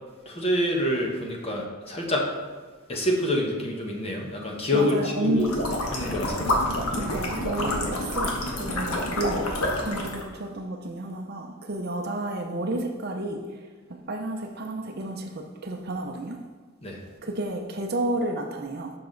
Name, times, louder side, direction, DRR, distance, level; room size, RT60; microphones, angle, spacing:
voice 1, 0.3-2.2 2.9-5.5 5.9-6.5 16.8-17.0, left 1 dB, 30° left, -1 dB, 1.0 m, -26 dB
voice 2, 4.7-5.4 6.9-9.5 9.8-13.4 13.9-16.4 17.2-18.9, right 2 dB, 45° right, 3 dB, 0.6 m, -31 dB
sound 1, 5.4-10.2, left 1 dB, 85° left, 1.3 m, -28 dB
7.0 x 5.7 x 3.9 m, 1.4 s
head